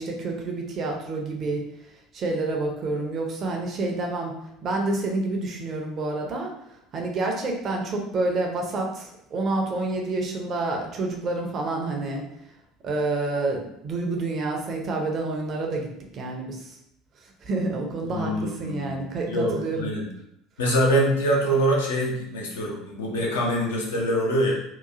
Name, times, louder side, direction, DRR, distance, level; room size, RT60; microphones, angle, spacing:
voice 1, 0.0-1.6 2.1-4.4 4.6-6.5 6.9-12.2 12.8-16.8 17.4-19.9, right 2 dB, 40° right, 1 dB, 0.6 m, -28 dB
voice 2, 18.0-20.1 20.6-24.5, right 1 dB, 70° left, -3 dB, 0.6 m, -24 dB
2.9 x 2.3 x 2.4 m, 0.79 s
figure-of-eight pair, 65°, 0 cm